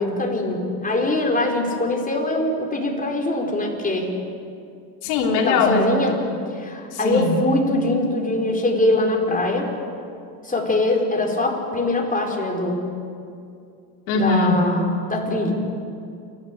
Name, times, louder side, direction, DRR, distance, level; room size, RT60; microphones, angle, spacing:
voice 1, 0.0-4.1 5.3-6.1 6.5-9.7 10.4-12.8 14.1-15.5, left 2 dB, 15° left, 0 dB, 4.8 m, -22 dB
voice 2, 5.0-6.2 6.9-7.4 14.1-14.7, left 3 dB, 80° left, 1 dB, 3.5 m, -21 dB
29.0 x 11.5 x 8.6 m, 2.5 s
supercardioid pair, 95°, 50 cm